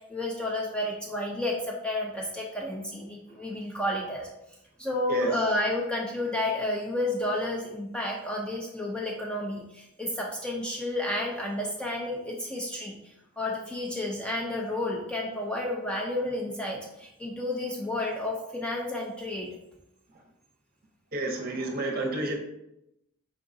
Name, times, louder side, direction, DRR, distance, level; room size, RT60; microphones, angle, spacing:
voice 1, 0.0-4.3 4.8-19.6, left 1 dB, 5° left, -2 dB, 0.4 m, -31 dB
voice 2, 21.1-22.4, right 2 dB, 40° right, 1 dB, 0.7 m, -30 dB
4.6 x 3.7 x 2.6 m, 0.84 s
head